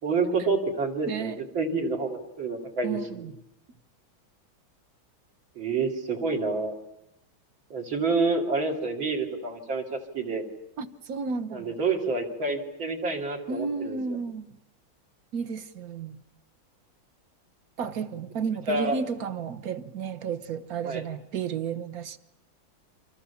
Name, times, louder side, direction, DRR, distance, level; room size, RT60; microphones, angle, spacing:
voice 1, 0.0-3.3 5.6-6.7 7.7-10.4 11.5-14.0 18.7-19.0 20.9-21.0, right 3 dB, 65° right, 3.8 m, -28 dB
voice 2, 1.0-1.4 2.8-3.3 10.8-11.8 13.5-14.6 15.3-16.2 17.8-22.2, right 6 dB, 50° right, 1.5 m, -32 dB
29.0 x 26.0 x 7.1 m
omnidirectional pair, 2.3 m